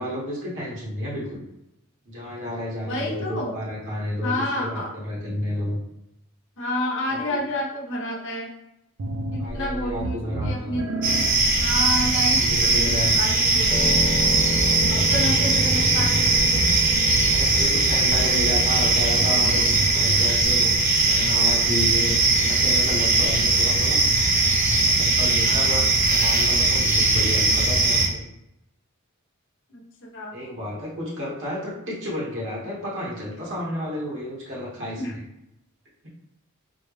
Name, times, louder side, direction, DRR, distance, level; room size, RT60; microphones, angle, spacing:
voice 1, 0.0-1.5 2.0-5.8 7.1-7.4 9.4-10.8 12.4-13.1 17.3-24.0 24.7-28.2 30.3-35.2, left 1 dB, 60° right, -6 dB, 1.4 m, -31 dB
voice 2, 2.8-3.5 4.2-4.9 6.6-8.5 9.3-10.9 11.6-14.0 14.9-16.6 25.4-25.9 29.7-29.8 30.1-30.3 35.0-35.1, left 1 dB, 60° left, -2 dB, 0.9 m, -30 dB
sound 1, 9.0-20.3, right 1 dB, 75° right, 0.6 m, -32 dB
sound 2, 11.0-28.1, right 3 dB, 40° right, 0.7 m, -20 dB
sound 3, 13.7-23.9, left 1 dB, 10° left, 0.5 m, -34 dB
4.3 x 2.3 x 3.3 m, 0.86 s
head